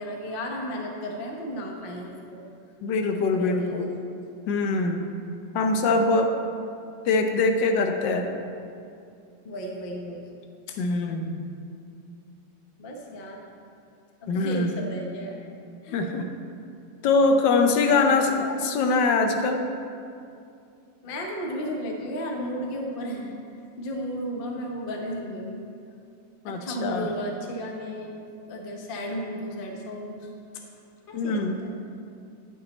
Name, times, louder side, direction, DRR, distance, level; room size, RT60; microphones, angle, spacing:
voice 1, 0.0-2.4 3.0-4.1 9.4-10.2 10.7-10.8 12.8-13.4 14.2-15.4 15.8-16.0 17.6-18.7 21.0-23.4 23.8-25.6 26.5-28.2 28.5-30.3 30.5-30.6 31.1-31.8, equal, 45° left, 0 dB, 0.7 m, -34 dB
voice 2, 2.8-3.9 4.5-5.1 5.5-6.3 7.1-8.3 10.8-11.4 14.3-14.7 15.9-16.2 17.0-19.6 26.4-27.1 31.1-31.6, left 3 dB, 75° left, 4 dB, 1.4 m, -23 dB
10.0 x 5.9 x 4.1 m, 2.5 s
omnidirectional pair, 2.0 m